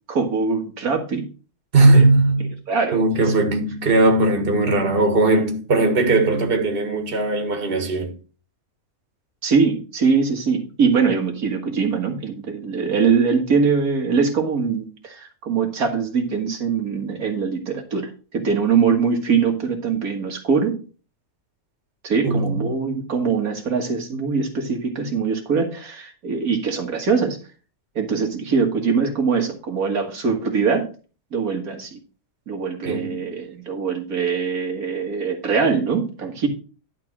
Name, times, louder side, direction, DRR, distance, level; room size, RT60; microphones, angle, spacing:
voice 1, 0.1-1.3 1.9-2.0 2.7-3.2 9.4-20.8 22.0-27.4 28.0-30.9 31.3-32.0 32.5-36.5, right 5 dB, 85° right, 2.1 m, -22 dB
voice 2, 1.7-2.5 2.9-8.1 22.2-22.6 32.8-33.3, right 2 dB, 40° right, 1.7 m, -18 dB
11.5 x 3.8 x 6.0 m
omnidirectional pair, 1.5 m